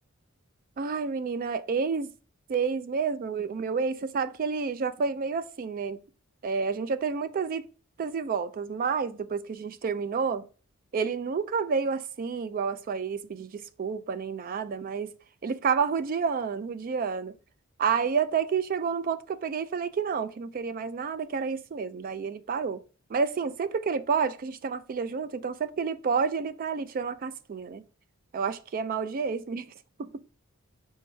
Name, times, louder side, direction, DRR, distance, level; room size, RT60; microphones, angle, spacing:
voice 1, 0.8-2.1 2.5-6.0 6.4-7.6 8.0-10.4 10.9-15.1 15.4-17.3 17.8-22.8 23.1-27.8 28.3-29.7 30.0-30.2, right 5 dB, 40° right, 0.3 m, -29 dB
4.6 x 3.4 x 3.2 m
head